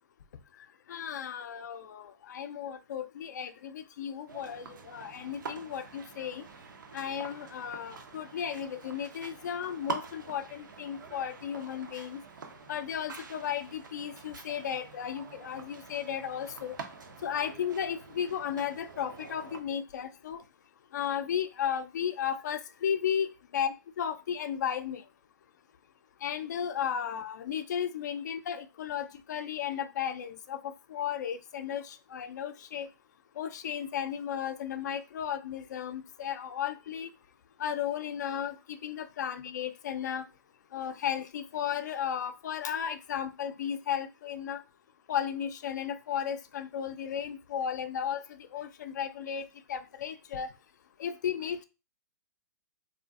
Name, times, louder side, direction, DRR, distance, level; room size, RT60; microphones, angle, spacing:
voice 1, 0.9-4.6 4.9-6.4 6.9-12.2 12.7-16.7 17.2-20.4 20.9-25.0 26.2-32.9 33.4-37.1 37.6-40.3 40.7-44.6 45.1-48.2 48.5-49.4 49.7-50.5 51.0-51.6, left 8 dB, 65° left, 10 dB, 0.4 m, -34 dB
sound 1, 4.3-19.6, right 5 dB, 85° right, 0.6 m, -45 dB
2.5 x 2.4 x 2.3 m, 0.29 s
hypercardioid pair, 130°, 10 cm